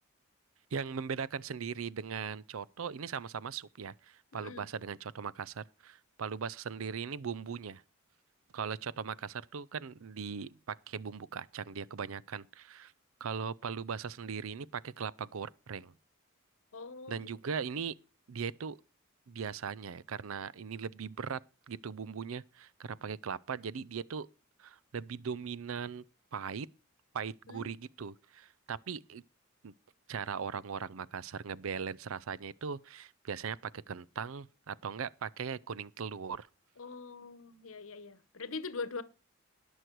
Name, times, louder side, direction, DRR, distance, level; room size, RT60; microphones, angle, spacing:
voice 1, 0.7-7.8 8.5-12.9 13.2-15.9 17.1-17.9 18.3-18.8 19.3-21.4 21.7-24.3 24.6-26.0 26.3-26.7 27.1-29.2 29.6-29.7 30.1-36.5, right 6 dB, 80° right, 0.5 m, -39 dB
voice 2, 4.3-4.7 16.7-17.2 17.5-17.6 27.5-27.7 36.8-39.0, left 4 dB, 75° left, 1.0 m, -42 dB
19.0 x 6.4 x 4.6 m
head